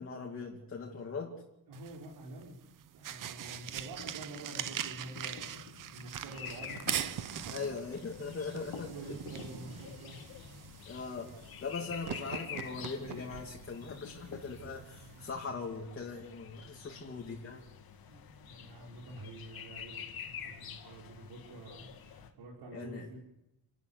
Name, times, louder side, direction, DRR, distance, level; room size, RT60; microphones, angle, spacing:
voice 1, 0.0-1.4 7.5-8.9 10.8-17.7 22.7-23.1, left 4 dB, 35° left, 0 dB, 2.7 m, -40 dB
sound 1, 1.7-15.3, right 10 dB, 55° right, 0.9 m, -42 dB
voice 2, 1.7-2.6 2.9-5.5 5.9-7.6 8.6-10.3 16.9-17.0 18.0-23.2, right 2 dB, 90° right, -3 dB, 4.6 m, -48 dB
sound 2, 3.7-14.5, left 6 dB, 80° left, 2.8 m, -53 dB
sound 3, 6.3-22.3, left 8 dB, 65° left, 2.6 m, -48 dB
30.0 x 13.0 x 8.5 m, 0.87 s
cardioid pair, 165°, 39 cm